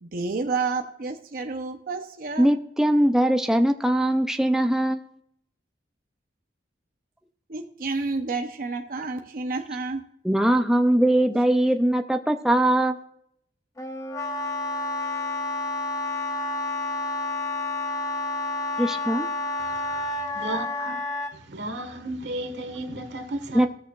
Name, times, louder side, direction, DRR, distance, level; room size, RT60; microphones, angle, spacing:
voice 1, 0.0-2.5 7.5-10.0 10.5-10.6, right 3 dB, 55° right, 0.7 m, -30 dB
voice 2, 2.4-5.0 10.2-13.0 18.8-19.3 23.5-23.7, right 1 dB, 5° right, 0.4 m, -21 dB
Wind instrument woodwind instrument, 13.8-21.3, left 2 dB, 20° left, 0.9 m, -29 dB
voice 3, 20.3-20.9 21.5-23.7, right 1 dB, 85° right, 1.5 m, -33 dB
16.0 x 6.6 x 2.4 m
head